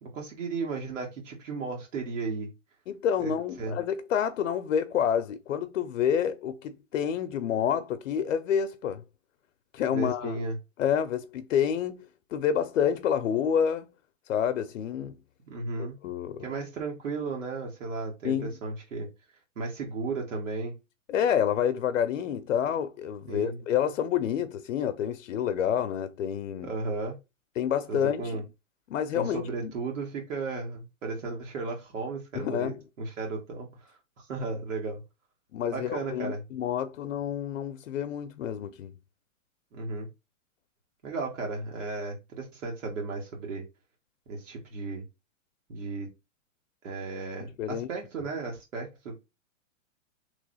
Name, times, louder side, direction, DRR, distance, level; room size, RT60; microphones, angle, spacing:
voice 1, 0.0-2.5 3.2-3.3 3.6-3.7 9.9-10.6 15.5-15.9 16.4-19.1 19.6-20.7 23.3-23.6 26.6-27.2 27.9-28.4 29.2-33.7 34.2-35.0 35.7-36.4 39.7-40.1 41.0-43.6 44.3-45.0 45.7-46.1 46.8-49.2, right 3 dB, 70° right, 1.8 m, -34 dB
voice 2, 2.9-9.0 9.7-10.4 10.8-12.1 12.3-13.9 14.3-15.2 16.0-16.4 18.2-18.5 21.1-26.7 27.6-28.4 28.9-29.7 32.3-32.8 35.5-38.9 47.6-47.9, left 8 dB, 75° left, 0.6 m, -28 dB
3.4 x 3.1 x 4.0 m
hypercardioid pair, 175°, 39 cm